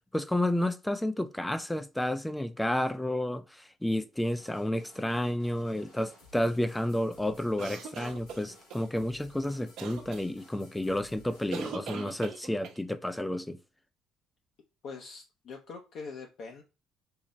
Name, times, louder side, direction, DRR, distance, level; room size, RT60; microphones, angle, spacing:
voice 1, 0.0-13.6, left 1 dB, 5° left, 0.4 m, -31 dB
sound 1, 4.4-11.8, left 1 dB, 75° left, 1.9 m, -57 dB
sound 2, 7.6-8.8 9.8-10.2 11.5-12.8, right 6 dB, 75° right, 0.8 m, -40 dB
voice 2, 14.8-16.6, left 4 dB, 60° left, 0.7 m, -43 dB
3.9 x 2.1 x 3.9 m
cardioid pair, 100°, 0 cm